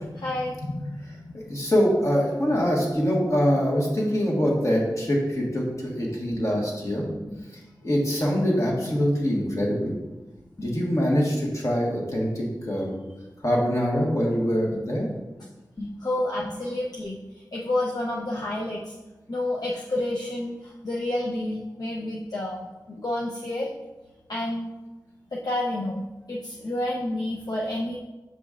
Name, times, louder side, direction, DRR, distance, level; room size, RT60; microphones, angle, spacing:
voice 1, 0.1-1.4 16.0-17.2 17.5-19.0 19.3-23.7 24.3-24.7 25.3-28.0, left 1 dB, 60° left, -3 dB, 0.6 m, -29 dB
voice 2, 1.3-7.3 7.8-9.9 10.6-13.0 13.4-15.1 15.8-15.9, equal, 45° left, -3 dB, 1.5 m, -24 dB
7.7 x 5.0 x 2.5 m, 1.1 s
wide cardioid pair, 75°, 8 cm